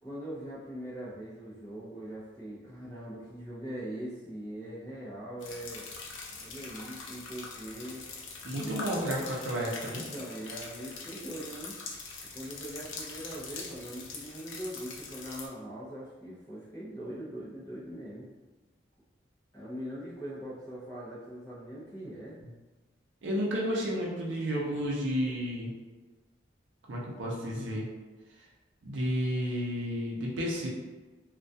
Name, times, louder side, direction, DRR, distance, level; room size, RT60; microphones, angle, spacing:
voice 1, 0.0-5.9 6.4-8.0 8.5-8.9 9.8-11.7 12.3-18.3 19.5-22.4, right 1 dB, 15° left, -9 dB, 0.5 m, -41 dB
sound 1, 5.4-15.5, left 4 dB, 90° left, 0.5 m, -43 dB
voice 2, 8.4-10.0 23.2-25.7 26.9-27.9 28.8-30.7, equal, 80° right, -3 dB, 0.5 m, -31 dB
2.2 x 2.2 x 2.6 m, 1.2 s
head